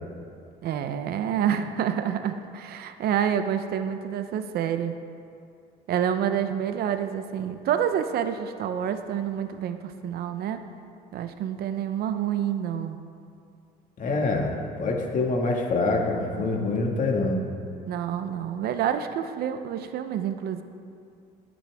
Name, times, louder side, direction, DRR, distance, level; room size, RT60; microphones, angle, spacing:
voice 1, 0.6-4.9 5.9-10.6 11.1-13.0 17.9-20.6, right 9 dB, 65° right, 9 dB, 0.7 m, -28 dB
voice 2, 14.0-17.4, left 3 dB, 50° left, 1 dB, 1.9 m, -25 dB
19.0 x 8.6 x 3.6 m, 2.5 s
cardioid pair, 110°, 17 cm